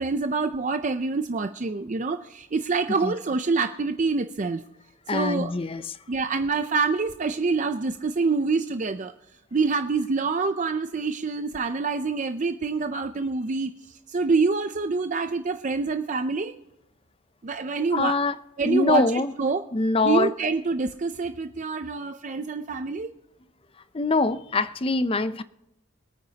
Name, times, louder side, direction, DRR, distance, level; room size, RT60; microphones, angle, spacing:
voice 1, 0.0-4.6 5.1-5.5 6.1-9.1 9.5-16.6 17.4-18.2 18.6-19.6 20.0-23.1, right 4 dB, 35° right, 0.5 m, -26 dB
voice 2, 5.1-6.0 17.9-18.4 18.6-19.3 19.7-20.3 23.9-25.4, left 3 dB, 25° left, 0.5 m, -24 dB
25.5 x 9.2 x 2.9 m
head